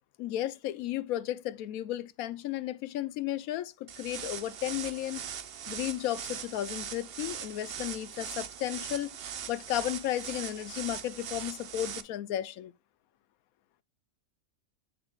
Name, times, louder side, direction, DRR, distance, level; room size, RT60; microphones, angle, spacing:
voice 1, 0.2-5.2 5.7-9.2 9.5-12.7, left 13 dB, 85° left, 1.0 m, -34 dB
sound 1, 3.9-12.0, right 8 dB, 55° right, 0.8 m, -40 dB
8.5 x 6.7 x 2.3 m
omnidirectional pair, 1.5 m